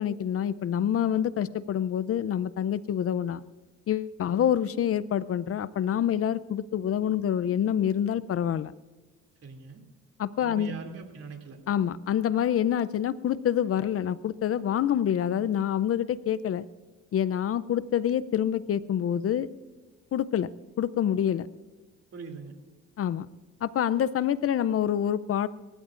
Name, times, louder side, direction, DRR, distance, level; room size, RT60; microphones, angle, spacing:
voice 1, 0.0-3.4 3.9-8.7 10.2-10.7 11.7-16.7 17.1-19.5 20.1-20.5 20.8-21.5 23.0-23.3 23.6-25.5, left 9 dB, 50° left, 17 dB, 0.5 m, -27 dB
voice 2, 9.4-9.8 10.4-11.6 22.1-22.5, right 4 dB, 55° right, 3 dB, 2.7 m, -41 dB
26.5 x 14.5 x 2.5 m, 1.3 s
cardioid pair, 90°, 30 cm